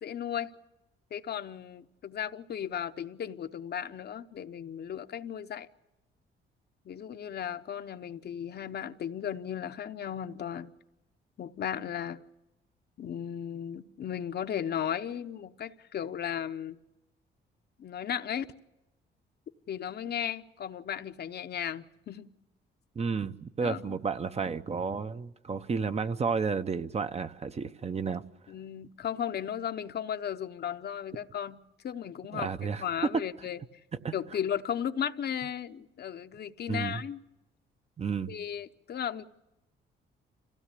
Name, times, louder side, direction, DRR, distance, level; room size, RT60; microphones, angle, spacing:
voice 1, 0.0-0.5 1.1-5.7 6.8-10.7 11.4-12.2 13.0-16.8 17.8-18.4 19.7-22.3 23.6-24.0 28.5-33.6 34.1-37.2 38.3-39.2, left 9 dB, 55° left, 0.8 m, -35 dB
voice 2, 23.0-28.2 32.3-32.8 34.0-34.1 36.7-37.0 38.0-38.3, right 5 dB, 30° right, 0.8 m, -32 dB
26.0 x 16.0 x 8.4 m
cardioid pair, 90°, 20 cm